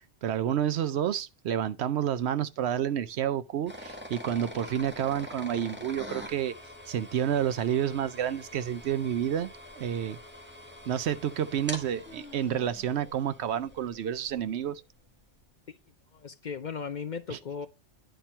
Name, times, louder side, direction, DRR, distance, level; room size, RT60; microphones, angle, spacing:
voice 1, 0.2-6.5 6.9-9.5 9.8-10.2 10.9-14.8 17.3-17.4, right 9 dB, 70° right, 0.8 m, -29 dB
sound 1, 3.7-14.5, left 1 dB, 10° right, 1.6 m, -45 dB
voice 2, 16.1-17.7, left 6 dB, 50° left, 0.6 m, -36 dB
10.0 x 4.3 x 4.4 m
omnidirectional pair, 1.2 m